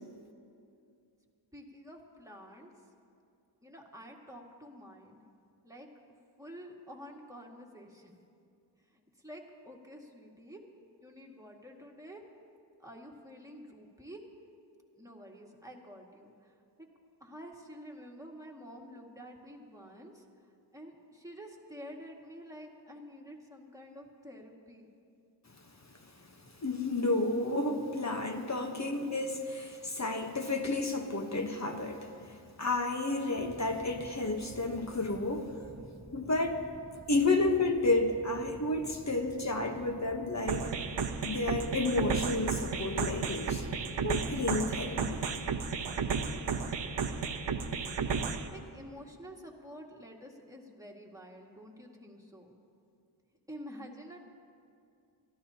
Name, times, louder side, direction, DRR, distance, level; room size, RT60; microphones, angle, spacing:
voice 1, 1.5-2.7 3.6-5.2 5.6-5.9 6.4-8.1 8.9-10.6 11.0-12.2 12.8-14.2 15.0-16.9 17.2-20.3 20.7-24.9 47.7-52.5 53.5-54.2, equal, 5° right, -1 dB, 2.0 m, -49 dB
voice 2, 26.6-35.6 36.1-36.6 37.1-40.7 41.2-43.7 44.0-45.2, left 2 dB, 35° left, 4 dB, 1.1 m, -31 dB
sound 1, 33.3-44.8, right 2 dB, 35° right, 1.3 m, -51 dB
sound 2, 40.5-48.5, right 5 dB, 65° right, 0.8 m, -33 dB
24.5 x 14.0 x 2.9 m, 2.5 s
wide cardioid pair, 60°, 45 cm